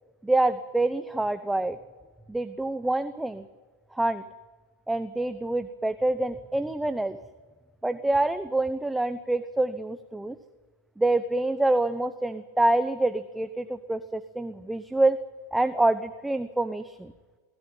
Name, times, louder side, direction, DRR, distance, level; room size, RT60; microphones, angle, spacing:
voice 1, 0.2-1.8 2.3-3.4 3.9-4.2 4.9-7.2 7.8-10.4 11.0-15.2 15.5-17.1, right 2 dB, 5° right, 11 dB, 0.8 m, -26 dB
22.5 x 14.5 x 9.1 m, 1.4 s
hypercardioid pair, 120°, 0 cm